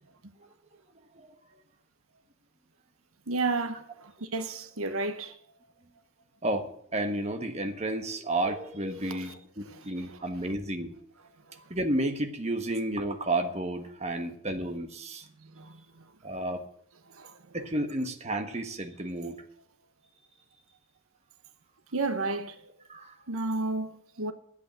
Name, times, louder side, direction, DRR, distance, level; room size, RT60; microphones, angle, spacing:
voice 1, 3.3-5.4 9.0-10.5 11.5-11.7 15.4-16.1 17.1-17.6 19.3-19.4 21.9-22.7 23.3-24.3, right 3 dB, 85° right, 1.1 m, -34 dB
voice 2, 6.4-10.9 11.7-15.2 16.2-16.6 17.5-19.4 22.9-23.1, right 1 dB, 30° right, 1.4 m, -31 dB
10.5 x 8.3 x 8.0 m
head